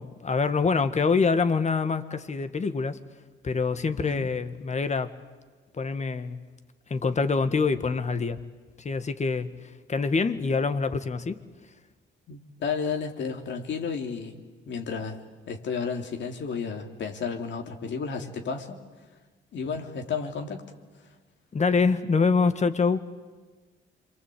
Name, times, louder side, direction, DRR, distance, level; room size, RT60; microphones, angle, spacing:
voice 1, 0.0-3.0 3.4-5.1 5.7-6.4 6.9-8.4 8.8-9.5 9.9-11.4 21.5-23.0, left 4 dB, 35° left, 10 dB, 1.9 m, -25 dB
voice 2, 12.3-15.2 15.5-18.8 19.5-20.6, left 5 dB, 65° left, 4 dB, 3.4 m, -32 dB
28.0 x 24.0 x 8.6 m, 1.4 s
cardioid pair, 90°, 20 cm